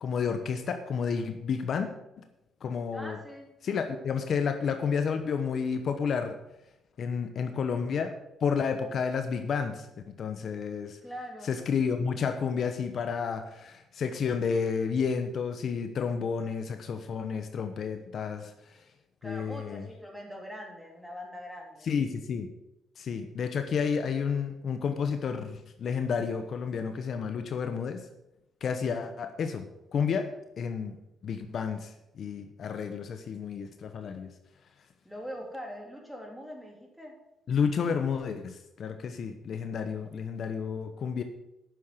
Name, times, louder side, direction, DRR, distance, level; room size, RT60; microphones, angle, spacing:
voice 1, 0.0-1.9 2.2-2.3 2.6-3.2 3.6-6.4 7.0-8.1 8.4-11.0 11.5-18.5 19.2-19.8 21.8-22.5 23.0-28.0 28.6-30.3 30.6-30.9 31.2-34.3 37.5-41.2, left 6 dB, 60° left, 8 dB, 0.9 m, -31 dB
voice 2, 2.9-3.5 11.0-11.5 19.2-21.9 35.1-37.1, equal, ahead, 0 dB, 3.3 m, -42 dB
9.3 x 6.5 x 7.9 m, 0.90 s
cardioid pair, 90°, 0 cm